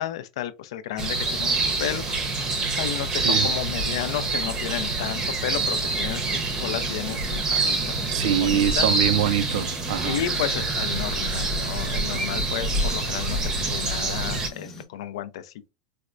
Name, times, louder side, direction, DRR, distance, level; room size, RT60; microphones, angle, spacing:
voice 1, 0.0-2.2 2.8-8.9 10.0-15.7, left 11 dB, 65° left, 0.5 m, -32 dB
sound 1, 1.0-14.5, right 3 dB, 20° right, 0.7 m, -26 dB
voice 2, 3.1-3.5 8.1-10.2, right 10 dB, 65° right, 0.4 m, -24 dB
sound 2, 5.5-14.9, left 3 dB, 15° left, 0.7 m, -44 dB
4.2 x 2.1 x 2.4 m
supercardioid pair, 145°, 3 cm